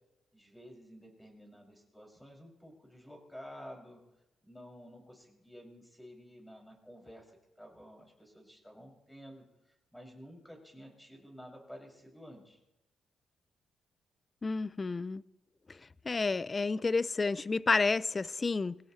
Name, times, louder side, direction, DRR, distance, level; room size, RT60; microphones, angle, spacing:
voice 1, 0.3-4.0 4.4-12.6, equal, 5° left, 6.5 m, -52 dB
voice 2, 14.4-15.2 15.7-15.8 16.1-18.8, left 3 dB, 30° left, 0.5 m, -30 dB
24.0 x 17.0 x 3.2 m
cardioid pair, 75°, 0 cm